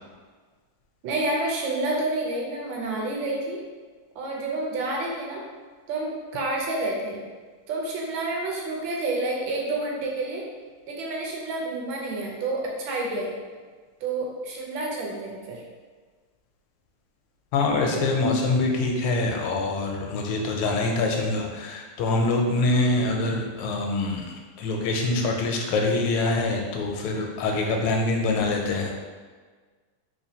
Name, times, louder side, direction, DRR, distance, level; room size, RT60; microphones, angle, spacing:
voice 1, 1.0-3.6 4.1-5.4 5.9-7.2 7.7-10.4 10.9-13.3 14.0-15.6, right 2 dB, 70° right, -2 dB, 1.4 m, -29 dB
voice 2, 17.5-28.9, left 2 dB, 85° left, 1 dB, 1.5 m, -25 dB
3.6 x 3.0 x 2.8 m, 1.5 s
omnidirectional pair, 2.3 m